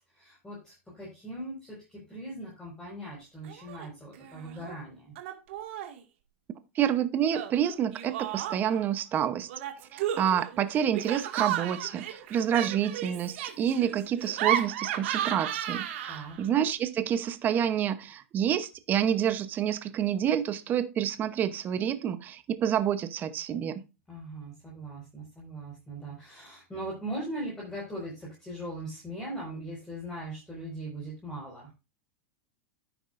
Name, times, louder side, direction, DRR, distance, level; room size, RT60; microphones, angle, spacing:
voice 1, 0.1-5.1 16.1-16.4 24.1-31.7, right 1 dB, 10° left, -5 dB, 5.0 m, -40 dB
Laughter, 3.4-3.9 4.1-4.8 5.2-6.0 7.3-8.8 9.5-16.4, right 11 dB, 65° right, 2.0 m, -34 dB
voice 2, 6.7-9.5 9.9-23.8, right 9 dB, 25° right, 12 dB, 0.9 m, -28 dB
10.5 x 9.3 x 2.6 m, 0.28 s
supercardioid pair, 145°, 7 cm